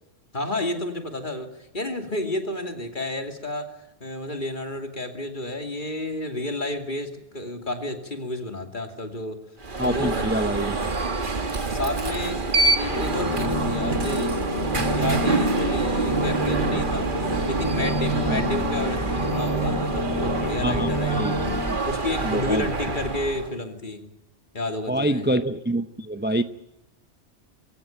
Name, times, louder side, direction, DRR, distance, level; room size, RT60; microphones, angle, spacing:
voice 1, 0.3-1.5 1.7-3.7 4.0-9.4 9.8-10.3 11.6-12.4 12.7-14.4 14.9-17.1 17.4-21.2 21.8-24.0 24.5-25.3, left 1 dB, 45° left, 2.8 m, -30 dB
Alarm, 9.6-23.5, right 3 dB, 45° right, 1.7 m, -27 dB
voice 2, 9.8-10.9 18.2-18.4 20.6-21.3 22.2-22.7 24.9-26.4, right 1 dB, 10° right, 0.7 m, -26 dB
sound 1, 12.9-21.7, left 1 dB, 90° left, 3.2 m, -28 dB
23.0 x 16.0 x 9.2 m
omnidirectional pair, 1.2 m